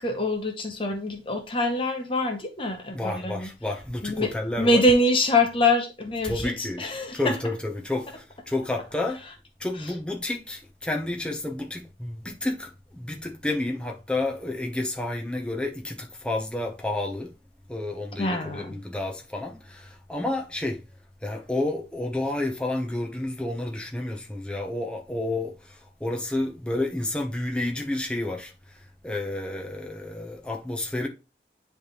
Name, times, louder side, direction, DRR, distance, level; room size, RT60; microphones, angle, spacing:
voice 1, 0.0-3.5 4.0-7.4 9.8-9.9 18.2-18.8, left 1 dB, 30° left, 0.8 m, -25 dB
voice 2, 2.9-4.8 6.2-6.8 7.1-9.2 9.6-17.3 17.7-20.8 21.2-28.5 29.0-31.1, left 2 dB, 5° left, 0.9 m, -30 dB
10.0 x 3.5 x 3.1 m
head